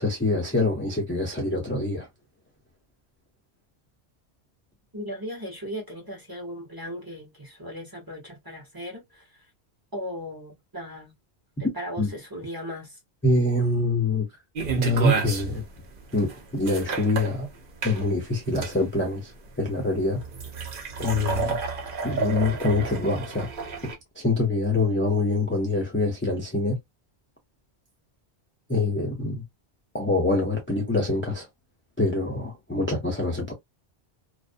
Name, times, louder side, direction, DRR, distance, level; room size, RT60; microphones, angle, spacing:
voice 1, 0.0-2.1 12.0-12.1 13.2-14.3 14.8-15.6 16.1-17.5 17.8-19.3 19.6-20.2 21.0-21.6 22.0-23.5 23.8-26.8 28.7-29.4 29.9-31.5 32.0-33.5, left 2 dB, 15° left, 0.5 m, -25 dB
voice 2, 4.9-9.4 9.9-11.1 11.7-13.0, equal, 20° right, 0.9 m, -37 dB
sound 1, 14.6-23.9, right 5 dB, 55° right, 0.8 m, -31 dB
2.5 x 2.1 x 2.5 m
omnidirectional pair, 1.1 m